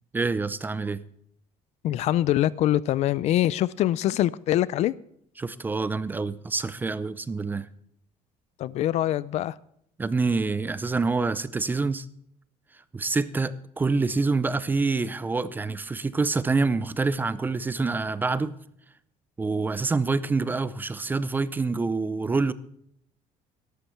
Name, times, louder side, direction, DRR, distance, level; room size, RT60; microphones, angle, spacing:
voice 1, 0.1-1.0 5.4-7.7 10.0-12.1 12.9-18.5 19.4-22.5, right 3 dB, 15° right, 0.4 m, -26 dB
voice 2, 1.8-4.9 8.6-9.6, left 13 dB, 50° left, 0.4 m, -24 dB
14.0 x 11.5 x 4.5 m
cardioid pair, 165°, 14 cm